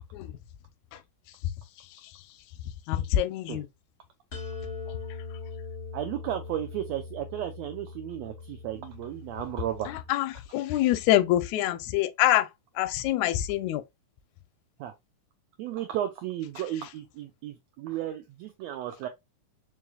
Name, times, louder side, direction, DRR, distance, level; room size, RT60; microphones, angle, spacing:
voice 1, 2.9-3.7 9.9-12.5 12.8-13.8, left 13 dB, 80° left, 1.7 m, -25 dB
sound 1, 4.3-10.1, left 4 dB, 65° left, 0.6 m, -41 dB
voice 2, 5.9-9.9 14.8-14.9 15.6-19.1, right 12 dB, 85° right, 1.5 m, -34 dB
4.6 x 3.1 x 2.3 m
omnidirectional pair, 3.6 m